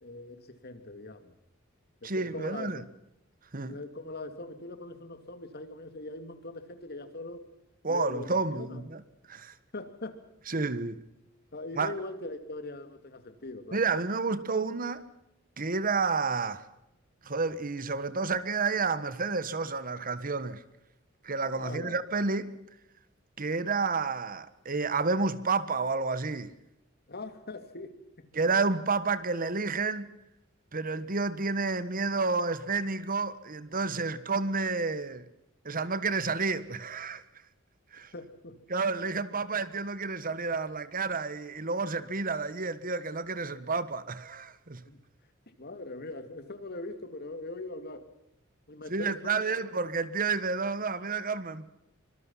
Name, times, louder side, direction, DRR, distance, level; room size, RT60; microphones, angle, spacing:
voice 1, 0.0-1.3 2.0-2.8 3.7-7.4 7.9-8.8 9.7-10.2 10.5-10.7 11.5-13.8 21.5-22.0 27.1-28.3 38.1-38.6 44.9-45.0 45.6-48.0 48.7-49.6, left 2 dB, 50° left, 2.7 m, -41 dB
voice 2, 2.0-2.8 3.5-3.8 7.8-9.0 9.3-9.5 10.5-11.0 11.8-11.9 13.7-15.0 15.6-16.7 17.2-20.6 21.2-22.5 23.4-26.5 28.3-30.1 30.7-35.2 35.6-37.2 37.9-38.1 38.7-44.8 48.9-51.7, right 4 dB, 45° right, 1.4 m, -30 dB
25.0 x 25.0 x 5.7 m
head